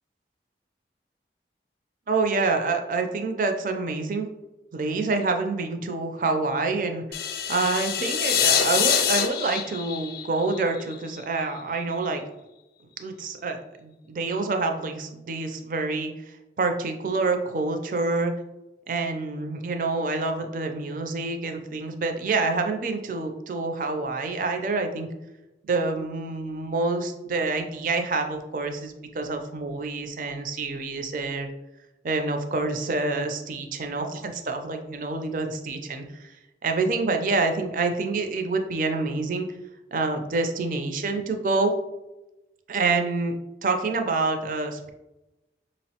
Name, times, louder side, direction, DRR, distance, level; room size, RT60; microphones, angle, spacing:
voice 1, 2.1-4.3 4.7-7.0 7.5-12.2 13.0-18.3 18.9-25.1 25.6-31.5 32.0-36.3 36.6-39.5 39.9-41.7 42.7-43.3 43.6-44.9, right 3 dB, 45° right, 5 dB, 0.4 m, -27 dB
sound 1, 7.1-11.2, left 8 dB, 55° left, 0.3 m, -25 dB
5.0 x 2.0 x 2.8 m, 0.99 s
head